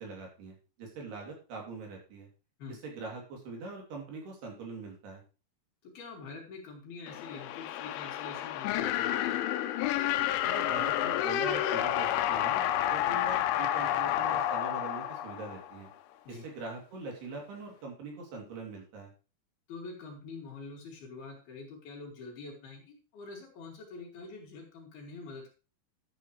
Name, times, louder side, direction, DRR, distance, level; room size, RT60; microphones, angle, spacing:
voice 1, 0.0-2.3 2.8-5.2 10.4-15.9 16.3-19.1, right 3 dB, 60° right, 0 dB, 4.8 m, -43 dB
voice 2, 5.8-9.4 16.2-16.5 19.7-25.5, left 3 dB, 60° left, -1 dB, 4.1 m, -45 dB
Manic evil laugh, 7.1-15.9, left 12 dB, 85° left, 3.2 m, -30 dB
12.5 x 8.9 x 3.2 m, 0.33 s
omnidirectional pair, 5.4 m